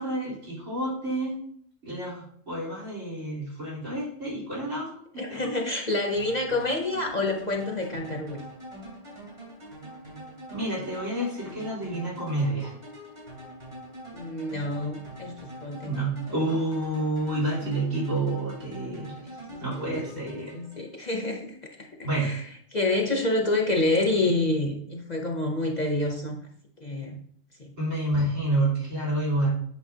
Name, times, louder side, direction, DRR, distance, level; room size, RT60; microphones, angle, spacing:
voice 1, 0.0-1.3 1.8-4.9 5.3-5.6 10.5-12.7 15.8-19.1 19.6-20.6 22.0-22.3 27.8-29.5, right 1 dB, 80° right, -6 dB, 3.9 m, -29 dB
voice 2, 5.2-8.4 14.1-15.9 19.5-20.2 20.5-21.9 22.1-26.5 26.8-27.2 27.6-27.7, left 2 dB, 40° left, 2 dB, 0.7 m, -28 dB
sound 1, 6.2-21.2, right 1 dB, 50° right, 3.7 m, -44 dB
8.4 x 5.9 x 2.7 m, 0.63 s
omnidirectional pair, 1.3 m